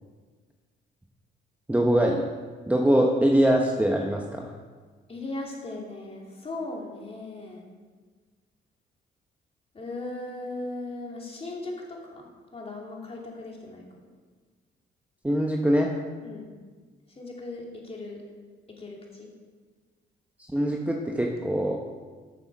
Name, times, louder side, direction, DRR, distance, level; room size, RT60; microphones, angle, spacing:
voice 1, 1.7-2.2 2.7-4.4 15.2-15.9 20.5-21.8, right 1 dB, 5° right, 0 dB, 0.9 m, -23 dB
voice 2, 5.1-7.6 9.7-13.8 16.2-16.5 17.1-18.2 18.7-19.3, left 2 dB, 30° left, -1 dB, 2.6 m, -38 dB
8.0 x 6.7 x 6.2 m, 1.5 s
cardioid pair, 90°, 20 cm